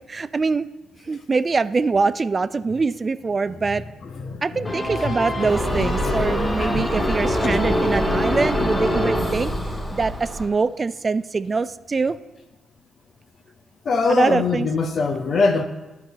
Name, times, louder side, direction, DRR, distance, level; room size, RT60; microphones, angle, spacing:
voice 1, 0.1-0.7 1.1-3.8 4.4-9.5 9.9-12.2 14.1-14.7, right 4 dB, 40° right, 0.3 m, -23 dB
voice 2, 4.0-5.1 5.4-6.9 7.3-7.6 13.8-15.6, left 4 dB, 60° left, 0.7 m, -24 dB
sound 1, 4.6-10.3, equal, 35° left, 1.8 m, -25 dB
Car passing by / Engine, 5.5-10.5, equal, 10° left, 2.0 m, -28 dB
11.5 x 4.8 x 4.0 m
hypercardioid pair, 40°, 0 cm